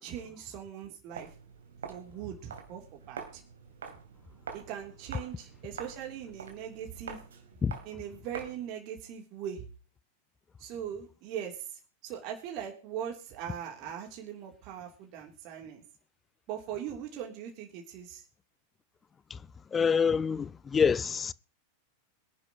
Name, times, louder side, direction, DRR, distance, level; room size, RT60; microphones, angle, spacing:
voice 1, 0.0-1.3 1.9-3.4 4.5-7.2 7.8-9.6 10.6-11.6 12.0-15.8 16.5-18.2, right 9 dB, 40° right, 3.3 m, -40 dB
Walk footsteps, 1.1-8.7, right 6 dB, 65° right, 2.8 m, -46 dB
voice 2, 19.3-21.3, left 6 dB, 20° left, 0.5 m, -27 dB
23.0 x 11.0 x 3.1 m
figure-of-eight pair, 90°, 0 cm